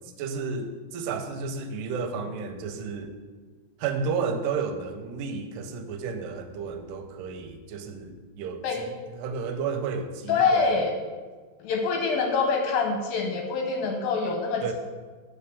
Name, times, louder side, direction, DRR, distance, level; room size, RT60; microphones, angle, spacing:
voice 1, 0.2-3.1 3.8-10.7 14.6-14.7, right 5 dB, 85° right, 7 dB, 2.8 m, -32 dB
voice 2, 10.3-10.9 11.6-14.7, left 4 dB, 75° left, 3 dB, 2.3 m, -25 dB
8.8 x 5.1 x 6.8 m, 1.4 s
omnidirectional pair, 4.7 m